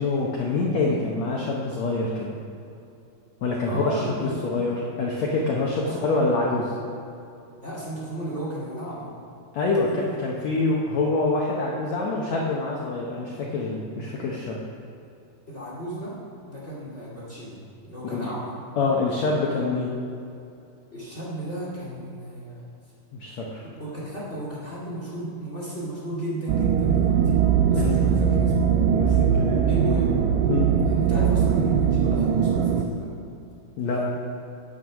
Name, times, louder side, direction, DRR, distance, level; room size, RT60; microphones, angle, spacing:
voice 1, 0.0-2.4 3.4-6.7 9.5-14.6 18.1-18.3 18.8-19.9 23.1-23.6 27.7-28.0 28.9-29.6 30.5-30.7 33.8-34.0, left 3 dB, 75° left, -3 dB, 1.6 m, -26 dB
voice 2, 3.7-4.7 5.8-6.1 7.6-9.1 9.8-10.1 15.5-16.2 16.4-17.6 17.8-18.5 20.9-22.6 23.6-27.2 27.7-28.7 29.7-30.1 30.8-33.1 33.8-34.1, right 1 dB, 25° left, -6 dB, 1.7 m, -34 dB
sound 1, 26.5-32.9, right 7 dB, 85° right, 1.9 m, -21 dB
9.3 x 9.0 x 6.2 m, 2.7 s
omnidirectional pair, 4.6 m